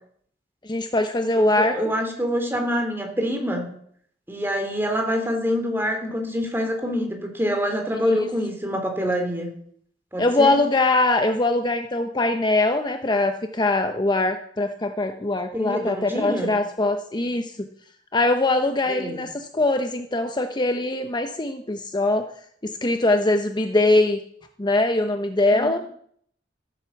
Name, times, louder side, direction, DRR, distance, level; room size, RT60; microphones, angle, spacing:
voice 1, 0.6-1.8 7.9-8.3 10.2-17.7 18.1-22.2 22.6-24.2 24.6-25.8, left 2 dB, 25° left, 7 dB, 0.9 m, -22 dB
voice 2, 1.3-3.7 4.3-9.5 10.1-10.6 15.5-16.5 18.9-19.2 25.5-25.7, equal, 15° right, 3 dB, 3.3 m, -26 dB
15.0 x 9.4 x 7.2 m, 0.64 s
head